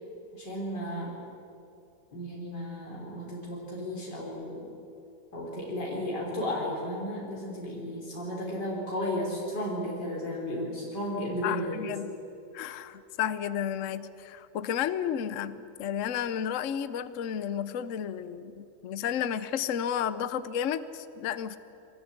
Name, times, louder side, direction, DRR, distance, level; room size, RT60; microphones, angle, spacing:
voice 1, 0.3-1.1 2.1-4.7 5.3-11.9, left 1 dB, 85° left, -3 dB, 4.3 m, -34 dB
voice 2, 11.4-12.1 12.5-21.6, left 9 dB, 55° left, 13 dB, 1.0 m, -32 dB
23.5 x 19.0 x 8.2 m, 2.8 s
omnidirectional pair, 1.8 m